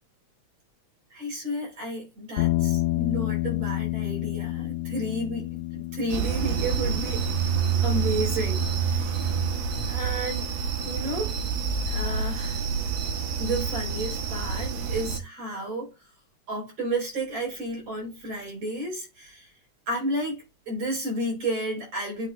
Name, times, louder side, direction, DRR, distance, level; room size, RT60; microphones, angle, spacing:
voice 1, 1.1-7.2 7.8-9.3 9.9-10.5 10.8-11.4 11.9-12.6 13.4-15.9 16.5-19.5 19.9-22.3, right 1 dB, 55° right, 5.3 m, -32 dB
sound 1, 2.4-10.7, left 17 dB, 85° left, 1.9 m, -31 dB
sound 2, 6.1-15.2, right 6 dB, 70° right, 2.2 m, -27 dB
9.1 x 3.5 x 3.0 m
omnidirectional pair, 3.3 m